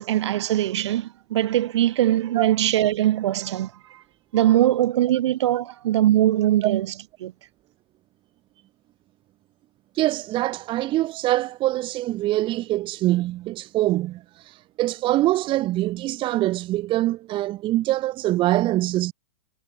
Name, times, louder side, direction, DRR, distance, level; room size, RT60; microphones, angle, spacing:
voice 1, 0.0-4.0 4.3-6.9 7.2-7.3, right 13 dB, 65° right, 3.7 m, -21 dB
voice 2, 10.0-19.1, right 16 dB, 30° right, 2.0 m, -24 dB
hypercardioid pair, 120°, 16 cm